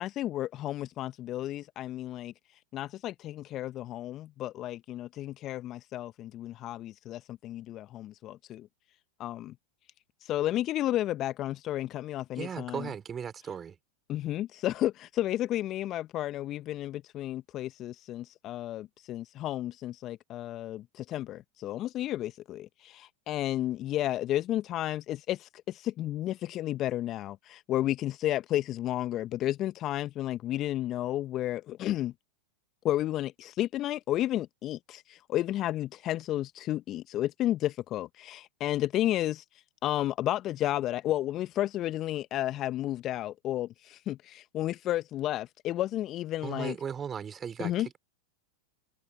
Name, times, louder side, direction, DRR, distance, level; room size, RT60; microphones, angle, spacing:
voice 1, 0.0-2.3 2.7-8.7 9.2-9.5 10.2-12.9 14.1-32.1 32.8-39.4 39.8-46.7 47.6-47.9, left 13 dB, 35° left, 1.1 m, -32 dB
voice 2, 12.4-13.8 46.4-48.0, right 7 dB, 25° right, 4.2 m, -37 dB
figure-of-eight pair, 95°, 0 cm